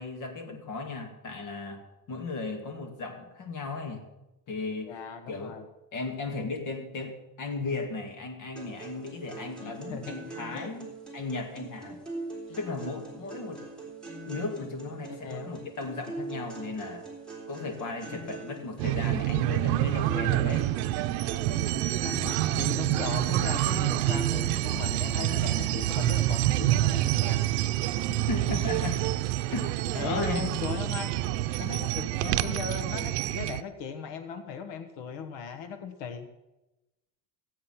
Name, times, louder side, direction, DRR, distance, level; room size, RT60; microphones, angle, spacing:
voice 1, 0.0-1.8 2.1-4.1 4.5-4.9 5.3-5.6 5.9-12.0 12.6-13.6 14.3-17.1 17.5-20.7 28.1-29.0 29.5-30.6, left 3 dB, 40° left, 4 dB, 2.1 m, -36 dB
voice 2, 4.8-5.7 9.6-10.2 10.5-10.7 12.5-12.6 15.2-15.5 21.6-27.5 29.9-31.1 31.6-36.3, left 6 dB, 70° left, 8 dB, 1.3 m, -38 dB
sound 1, 8.6-24.6, right 3 dB, ahead, 3.5 m, -42 dB
sound 2, 18.8-33.6, right 15 dB, 90° right, 0.7 m, -27 dB
15.0 x 8.7 x 5.7 m, 0.98 s
cardioid pair, 150°, 45 cm